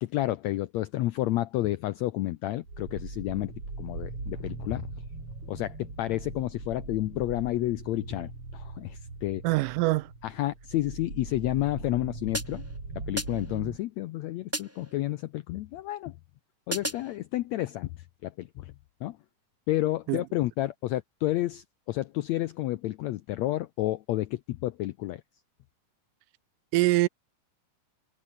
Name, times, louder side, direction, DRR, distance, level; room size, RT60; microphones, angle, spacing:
voice 1, 0.0-4.9 5.4-9.4 10.2-12.6 12.9-16.1 16.7-18.7 19.0-19.2 19.7-25.2, left 16 dB, 90° left, 1.6 m, -30 dB
sound 1, 2.6-13.8, right 3 dB, 40° right, 7.8 m, -40 dB
voice 2, 9.4-10.1 20.1-20.2 26.7-27.1, right 20 dB, 80° right, 2.1 m, -24 dB
sound 2, 12.3-12.8 13.2-13.6 14.5-15.0 16.7-17.2, right 1 dB, 5° right, 2.9 m, -35 dB
omnidirectional pair, 3.9 m